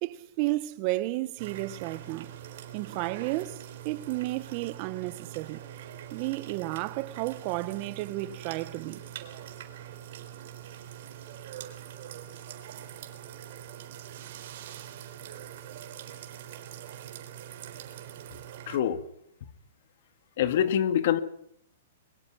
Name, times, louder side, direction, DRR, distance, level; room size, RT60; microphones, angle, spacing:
voice 1, 0.0-2.3 2.7-5.6 6.1-9.0, right 19 dB, 40° right, 1.1 m, -32 dB
sound 1, 1.4-18.8, right 10 dB, 60° right, 4.1 m, -43 dB
voice 2, 18.7-19.0 20.4-21.2, left 10 dB, 60° left, 2.1 m, -25 dB
23.0 x 22.5 x 5.8 m
hypercardioid pair, 150°, 0 cm